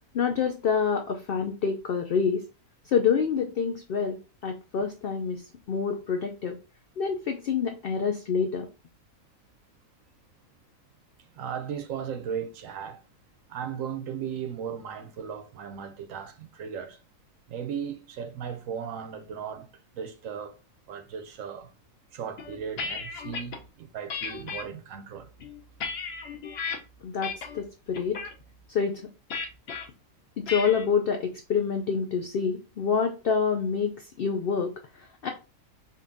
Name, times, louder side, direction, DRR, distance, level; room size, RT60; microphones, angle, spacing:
voice 1, 0.1-2.4 2.9-6.6 7.0-8.7 27.0-28.2 28.7-29.0 30.4-35.3, left 6 dB, 85° left, 0.5 m, -27 dB
voice 2, 11.3-13.0 13.5-17.0 17.5-20.6 20.9-21.7 22.1-25.3, right 7 dB, 70° right, 0.9 m, -36 dB
sound 1, 22.4-23.6 24.1-24.6 25.2-26.8 27.2-27.6 27.9-28.3 29.3-29.8 30.5-30.9, left 5 dB, 55° left, 0.8 m, -34 dB
5.2 x 2.5 x 2.5 m
omnidirectional pair, 1.5 m